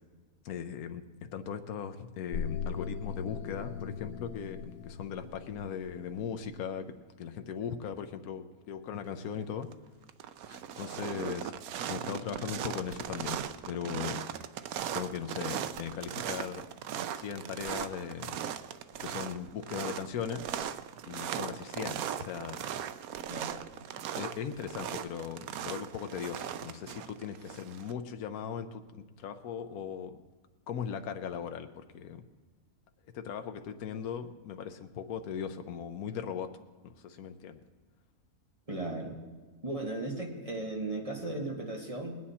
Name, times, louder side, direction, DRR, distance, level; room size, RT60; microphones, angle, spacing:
voice 1, 0.4-1.0 1.3-9.7 10.5-11.5 11.9-13.4 13.7-14.3 14.9-16.6 17.1-18.4 19.0-20.5 21.1-22.6 24.2-30.2 30.7-32.2 33.1-36.5 36.8-37.6, left 7 dB, 80° left, 7 dB, 1.2 m, -38 dB
sound 1, 2.3-6.6, left 6 dB, 65° left, 0.8 m, -39 dB
sound 2, 9.4-9.7 10.0-27.9, right 9 dB, 80° right, 1.1 m, -38 dB
voice 2, 23.3-23.6 38.7-39.2 39.6-42.2, right 2 dB, 25° right, 0 dB, 1.8 m, -36 dB
20.0 x 9.4 x 4.2 m, 1.3 s
omnidirectional pair, 1.5 m